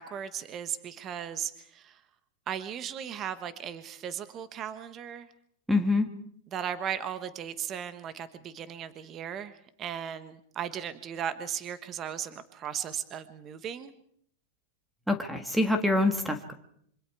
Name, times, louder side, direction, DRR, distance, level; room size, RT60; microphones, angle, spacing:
voice 1, 0.0-2.0 2.5-5.3 6.5-13.9, right 9 dB, 30° right, 12 dB, 1.3 m, -37 dB
voice 2, 5.7-6.1 15.1-16.5, left 2 dB, 5° right, 8 dB, 1.7 m, -25 dB
26.5 x 25.0 x 4.8 m, 0.65 s
supercardioid pair, 145°, 0 cm